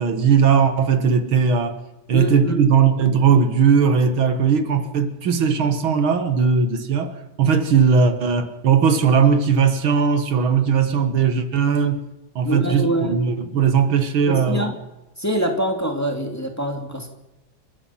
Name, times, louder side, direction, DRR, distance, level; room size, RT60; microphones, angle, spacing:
voice 1, 0.0-1.8 2.1-12.0 12.4-14.7, right 6 dB, 90° right, 2.5 m, -18 dB
voice 2, 2.1-2.7 12.4-13.2 14.3-14.8 15.2-17.1, right 1 dB, 10° left, 2.3 m, -24 dB
30.0 x 15.0 x 5.8 m
omnidirectional pair, 2.2 m